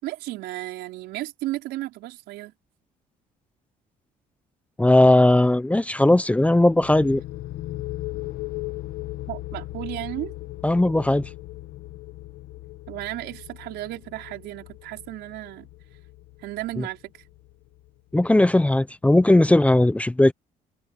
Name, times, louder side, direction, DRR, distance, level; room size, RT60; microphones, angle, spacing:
voice 1, 0.0-2.5 9.3-10.3 12.9-15.7 16.4-17.1, right 16 dB, 85° right, 5.0 m, -34 dB
voice 2, 4.8-7.2 10.6-11.3 16.8-16.9 18.1-20.3, left 1 dB, 10° left, 0.8 m, -18 dB
sound 1, 6.6-18.1, left 17 dB, 75° left, 2.0 m, -38 dB
cardioid pair, 110°, 17 cm